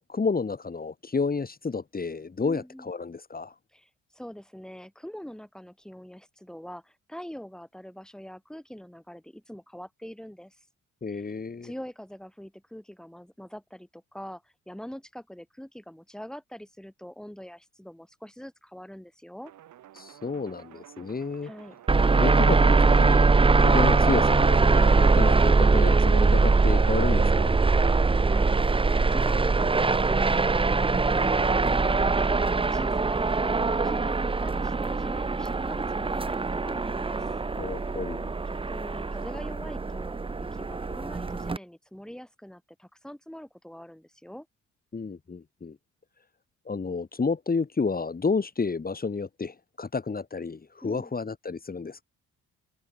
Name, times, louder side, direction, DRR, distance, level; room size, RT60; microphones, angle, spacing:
voice 1, 0.0-3.5 11.0-11.7 19.9-21.5 22.2-23.3 23.6-27.5 37.6-38.3 44.9-45.8 46.7-52.0, left 4 dB, 30° left, 4.9 m, -31 dB
voice 2, 2.4-2.9 3.7-10.6 11.1-11.3 11.6-19.5 21.4-21.8 28.1-32.4 32.7-37.2 37.8-37.9 38.5-40.2 40.5-44.5 50.8-51.1, equal, ahead, 6.7 m, -43 dB
sound 1, 19.4-33.2, right 12 dB, 75° right, 6.6 m, -51 dB
sound 2, 21.9-41.6, right 3 dB, 15° right, 0.9 m, -22 dB
cardioid pair, 90°, 30 cm